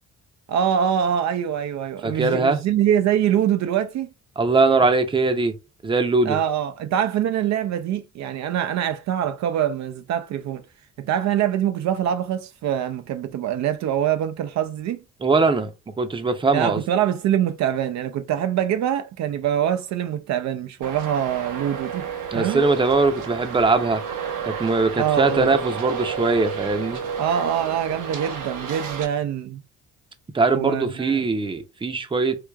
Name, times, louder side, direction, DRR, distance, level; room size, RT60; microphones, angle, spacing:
voice 1, 0.5-4.1 6.2-10.6 11.0-15.0 16.5-22.1 22.3-22.6 25.0-25.5 27.2-29.6 30.5-31.3, right 10 dB, 65° right, 0.4 m, -24 dB
voice 2, 2.0-2.6 4.4-5.5 5.8-6.4 15.2-15.7 16.0-16.8 22.3-24.0 24.5-27.0 30.3-32.4, right 3 dB, 15° right, 0.6 m, -21 dB
Traffic noise roadway noise, 20.8-29.1, right 7 dB, 80° right, 0.9 m, -31 dB
4.7 x 2.3 x 2.2 m
cardioid pair, 90°, 30 cm